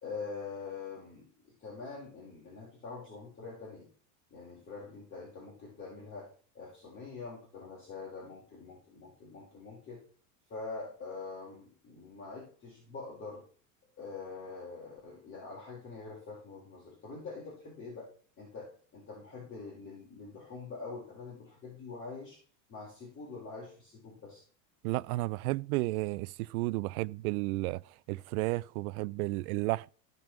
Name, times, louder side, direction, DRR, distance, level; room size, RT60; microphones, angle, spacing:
voice 1, 0.0-3.9 4.3-6.3 6.5-10.0 10.5-13.4 14.0-18.1 18.4-22.4 22.7-24.4, left 4 dB, 30° left, 4.7 m, -44 dB
voice 2, 24.8-27.8 28.1-29.9, right 21 dB, 85° right, 0.6 m, -32 dB
15.5 x 5.4 x 6.1 m
supercardioid pair, 145°, 42 cm